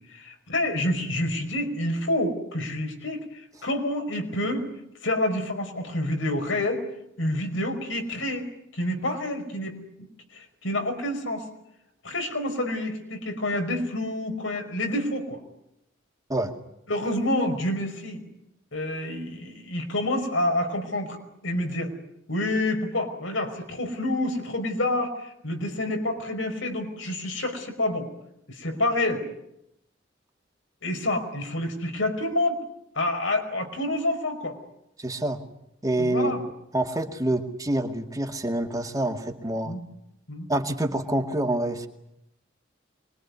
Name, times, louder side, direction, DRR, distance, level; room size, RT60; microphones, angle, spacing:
voice 1, 0.1-4.7 5.0-6.8 7.2-10.1 10.3-11.5 12.0-15.4 16.9-18.2 18.7-21.2 21.4-21.9 22.3-28.1 28.5-29.3 30.8-32.6 33.0-34.6 36.0-36.4 39.6-39.8 40.3-40.5, left 1 dB, 80° left, 5 dB, 5.1 m, -28 dB
voice 2, 35.0-35.4 35.8-36.4 36.7-39.7 40.5-41.9, right 1 dB, 20° right, 4 dB, 2.3 m, -26 dB
25.0 x 22.0 x 9.6 m, 0.81 s
head